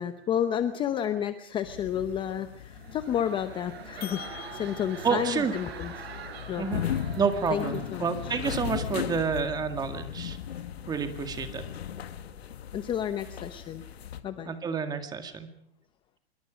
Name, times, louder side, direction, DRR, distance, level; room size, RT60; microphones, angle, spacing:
voice 1, 0.0-4.2 4.5-6.1 6.5-6.9 7.5-8.4 11.7-11.9 12.7-13.9 14.2-14.6, left 9 dB, 15° left, 10 dB, 0.8 m, -31 dB
sound 1, 1.6-14.2, left 9 dB, 75° left, 2.2 m, -38 dB
sound 2, 2.6-8.6 8.9-9.2, right 5 dB, 70° right, 6.2 m, -44 dB
voice 2, 5.0-5.5 6.6-6.8 7.2-10.4 10.9-11.6 14.4-15.5, right 5 dB, 10° right, 7 dB, 1.9 m, -29 dB
26.0 x 23.0 x 5.1 m, 0.65 s
hypercardioid pair, 155°, 31 cm